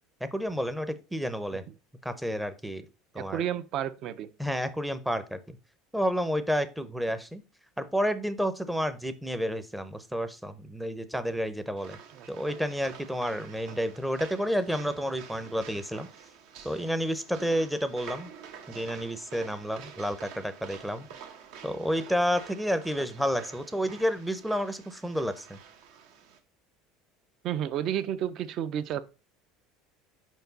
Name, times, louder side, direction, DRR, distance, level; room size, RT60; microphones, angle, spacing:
voice 1, 0.3-1.6 2.0-2.9 3.1-3.4 4.4-5.6 5.9-7.4 7.8-12.0 12.3-16.1 16.6-18.3 18.7-21.1 21.6-25.6, equal, 5° right, 0.6 m, -30 dB
voice 2, 3.2-4.3 12.1-12.3 27.4-29.0, right 10 dB, 50° right, 0.5 m, -31 dB
sound 1, 11.8-26.4, right 7 dB, 70° right, 0.9 m, -48 dB
5.3 x 4.5 x 3.9 m
cardioid pair, 135°, 0 cm